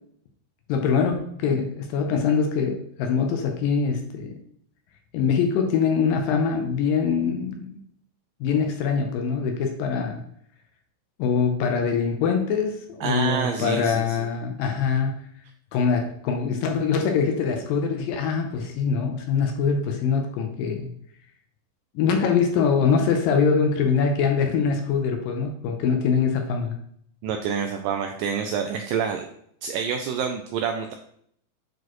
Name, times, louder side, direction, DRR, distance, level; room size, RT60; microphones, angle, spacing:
voice 1, 0.7-4.3 5.1-7.8 8.4-10.2 11.2-15.1 15.7-20.9 22.0-26.7, left 6 dB, 75° left, 4 dB, 2.2 m, -23 dB
voice 2, 13.0-14.3 27.2-29.3 29.6-30.9, right 7 dB, 85° right, 4 dB, 1.9 m, -27 dB
8.2 x 4.7 x 3.0 m, 0.66 s
omnidirectional pair, 4.4 m